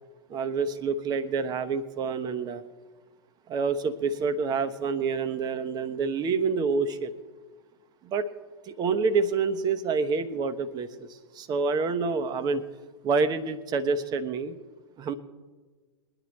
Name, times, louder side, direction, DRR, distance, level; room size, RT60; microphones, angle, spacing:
voice 1, 0.3-2.6 3.5-7.2 8.0-8.3 8.6-12.6 13.0-14.6 15.0-15.1, right 4 dB, 30° right, 11 dB, 1.0 m, -27 dB
22.0 x 11.0 x 3.2 m, 1.4 s
figure-of-eight pair, 90°, 14 cm